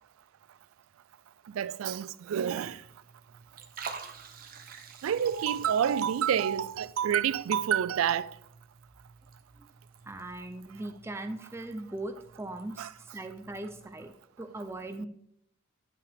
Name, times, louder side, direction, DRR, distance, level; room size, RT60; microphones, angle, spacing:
voice 1, 1.5-2.8 5.0-8.3 12.8-12.9, right 9 dB, 85° right, 0.3 m, -28 dB
Liquid, 2.6-14.1, right 5 dB, 45° right, 0.8 m, -50 dB
voice 2, 10.1-15.1, right 2 dB, 10° right, 0.4 m, -40 dB
10.0 x 5.6 x 3.4 m
head